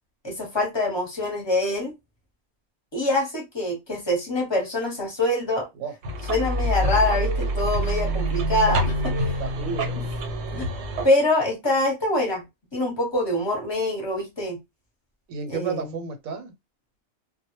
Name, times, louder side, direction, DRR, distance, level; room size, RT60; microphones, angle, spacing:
voice 1, 0.2-1.9 2.9-5.7 6.2-9.4 10.0-10.1 10.5-10.7 11.0-12.4 12.7-14.6 15.5-16.0, left 1 dB, 25° left, 0.7 m, -25 dB
sound 1, 6.0-11.1, right 1 dB, 65° right, 0.8 m, -26 dB
voice 2, 9.4-10.1 15.3-16.5, right 5 dB, 90° right, 1.0 m, -32 dB
2.1 x 2.1 x 2.9 m
omnidirectional pair, 1.4 m